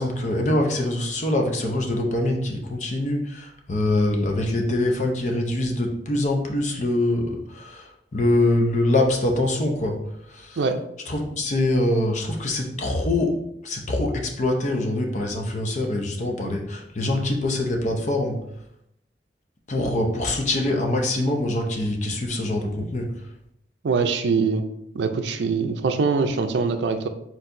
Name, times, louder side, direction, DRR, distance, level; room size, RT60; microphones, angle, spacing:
voice 1, 0.0-10.0 10.3-10.6 11.1-13.3 13.6-18.4 19.7-23.1, left 1 dB, 40° left, 2 dB, 0.6 m, -24 dB
voice 2, 23.8-24.7 24.9-27.1, right 4 dB, 80° right, 7 dB, 0.4 m, -23 dB
4.5 x 4.0 x 2.6 m, 0.78 s
head